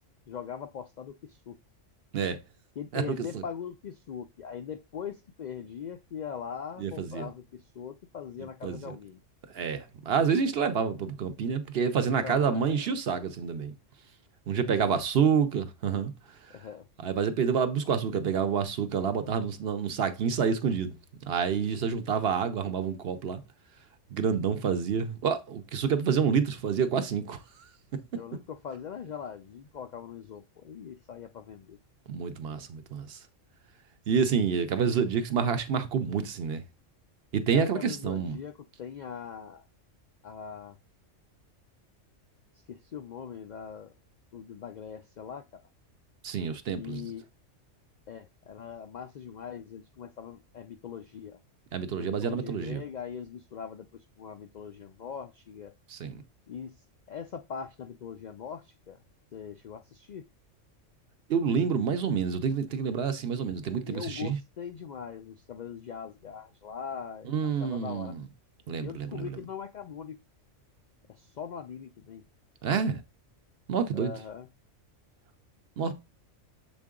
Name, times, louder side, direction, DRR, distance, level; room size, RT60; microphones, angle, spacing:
voice 1, 0.3-1.6 2.8-9.2 12.0-12.8 14.8-15.0 16.5-16.8 28.1-31.8 37.5-39.6 40.2-40.8 42.7-43.9 44.3-45.5 46.7-47.3 48.1-51.4 52.0-55.7 56.5-56.7 57.1-59.0 59.3-60.3 63.9-68.1 68.8-70.2 71.1-72.2 73.9-74.5, left 7 dB, 75° left, 0.4 m, -41 dB
voice 2, 2.9-3.4 6.8-7.3 8.6-8.9 9.5-13.7 14.5-16.1 17.0-20.9 21.3-23.4 24.1-27.4 32.1-33.2 34.1-36.6 37.3-38.4 46.2-47.0 51.7-52.8 55.9-56.2 61.3-64.4 67.3-68.2 68.7-69.3 72.6-73.0 73.7-74.1 75.8-75.9, right 6 dB, 60° right, 0.8 m, -28 dB
7.0 x 3.7 x 3.6 m
omnidirectional pair, 1.3 m